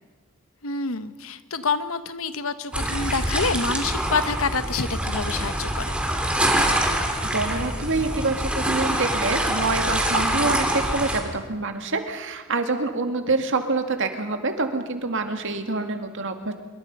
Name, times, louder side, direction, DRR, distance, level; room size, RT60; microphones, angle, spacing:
voice 1, 0.6-5.9, left 4 dB, 70° left, 12 dB, 1.2 m, -27 dB
sound 1, 2.7-11.2, right 1 dB, 5° right, 2.8 m, -25 dB
voice 2, 6.8-16.5, right 3 dB, 60° right, 6 dB, 2.2 m, -26 dB
26.5 x 23.0 x 5.5 m, 1.3 s
head